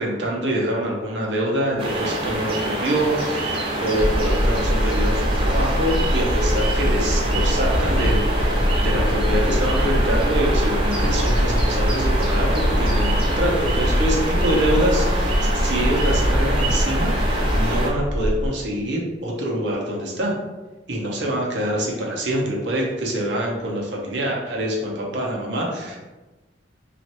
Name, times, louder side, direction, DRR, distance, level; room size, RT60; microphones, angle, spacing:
voice 1, 0.0-20.4 20.9-26.0, right 1 dB, 80° right, -2 dB, 0.7 m, -25 dB
sound 1, 1.8-17.9, right 1 dB, 30° right, 0.6 m, -26 dB
sound 2, 4.0-18.5, equal, 50° left, 0.6 m, -22 dB
3.1 x 2.5 x 2.9 m, 1.2 s
head